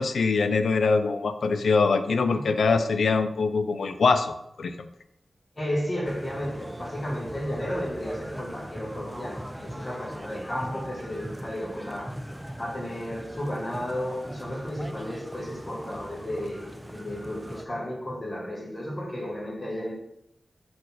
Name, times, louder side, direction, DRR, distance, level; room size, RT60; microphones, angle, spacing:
voice 1, 0.0-4.9, left 4 dB, 85° left, 0.5 m, -23 dB
voice 2, 5.5-12.2 12.6-19.9, equal, 25° left, 1.6 m, -33 dB
sound 1, 6.0-17.6, equal, 5° right, 0.4 m, -40 dB
6.6 x 4.2 x 4.2 m
wide cardioid pair, 115°, 0 cm